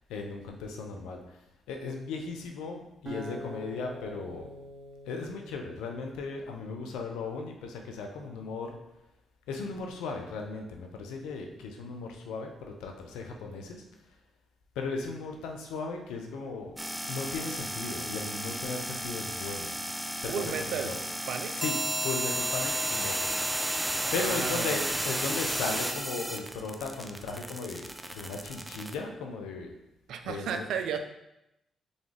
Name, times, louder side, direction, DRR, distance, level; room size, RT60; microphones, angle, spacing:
voice 1, 0.1-1.4 1.7-4.5 5.1-8.8 9.5-13.8 14.8-16.8 17.1-19.7 20.2-21.0 21.6-21.8 22.0-23.2 24.1-29.7 30.2-30.7, left 4 dB, 80° left, 3 dB, 0.6 m, -36 dB
Acoustic guitar, 3.1-6.3, equal, 55° right, 1.3 m, -44 dB
sound 1, 16.8-29.0, equal, 5° right, 0.6 m, -33 dB
voice 2, 20.3-21.0 21.3-21.5 24.0-24.9 30.1-31.0, right 7 dB, 75° right, 7 dB, 0.4 m, -34 dB
4.0 x 3.5 x 3.3 m, 0.87 s
hypercardioid pair, 45°, 0 cm